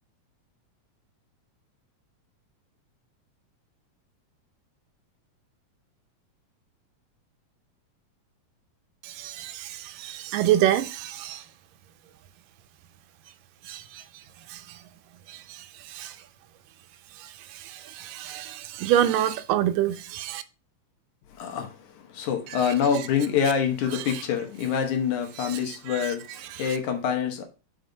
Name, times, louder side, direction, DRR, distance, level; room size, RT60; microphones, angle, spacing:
voice 1, 9.0-11.4 13.7-13.8 14.5-14.6 15.9-16.1 17.7-20.4, right 11 dB, 80° right, 2.3 m, -26 dB
voice 2, 21.3-27.4, left 7 dB, 70° left, 2.3 m, -26 dB
5.8 x 5.3 x 5.2 m
omnidirectional pair, 3.8 m